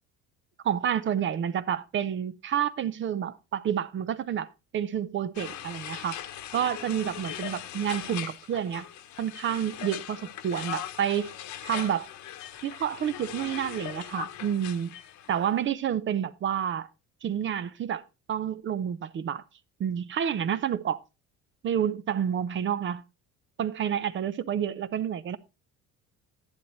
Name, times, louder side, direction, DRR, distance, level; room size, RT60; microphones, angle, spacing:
voice 1, 0.6-4.5 4.7-6.2 6.5-8.9 9.2-11.3 11.6-12.1 12.6-15.0 15.3-16.9 17.2-18.0 18.3-19.4 19.8-21.0 21.6-23.0 23.6-25.4, right 9 dB, 40° right, 0.6 m, -29 dB
sound 1, 5.4-15.4, left 11 dB, 60° left, 1.1 m, -40 dB
10.5 x 10.5 x 3.1 m
cardioid pair, 140°, 32 cm